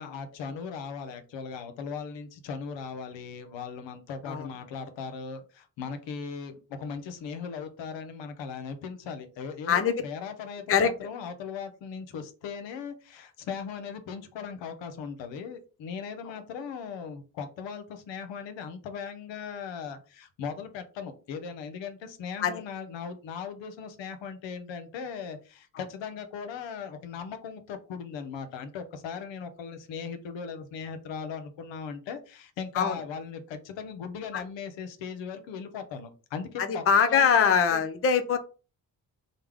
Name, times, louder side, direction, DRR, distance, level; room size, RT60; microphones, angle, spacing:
voice 1, 0.0-37.8, left 6 dB, 65° left, 8 dB, 0.7 m, -38 dB
voice 2, 36.6-38.4, left 7 dB, 30° left, 8 dB, 0.5 m, -23 dB
3.2 x 2.0 x 3.4 m, 0.34 s
hypercardioid pair, 40°, 47 cm